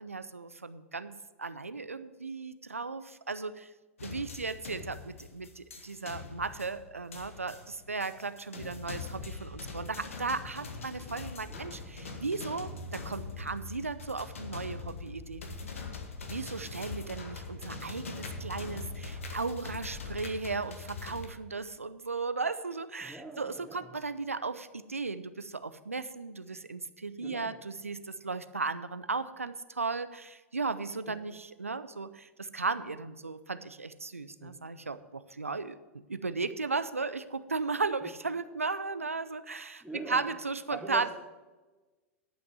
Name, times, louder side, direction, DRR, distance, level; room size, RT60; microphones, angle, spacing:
voice 1, 0.0-3.7 4.0-15.4 16.3-35.8 36.1-41.1, right 4 dB, 90° right, 13 dB, 0.6 m, -36 dB
sound 1, 4.0-21.3, left 4 dB, 75° left, 1.4 m, -42 dB
voice 2, 11.5-11.8 23.0-24.0 27.2-27.6 31.1-31.2 34.4-34.7 38.0-38.1 39.8-40.3 40.7-41.1, right 2 dB, ahead, -2 dB, 1.3 m, -44 dB
11.0 x 5.9 x 7.5 m, 1.2 s
figure-of-eight pair, 95°, 7 cm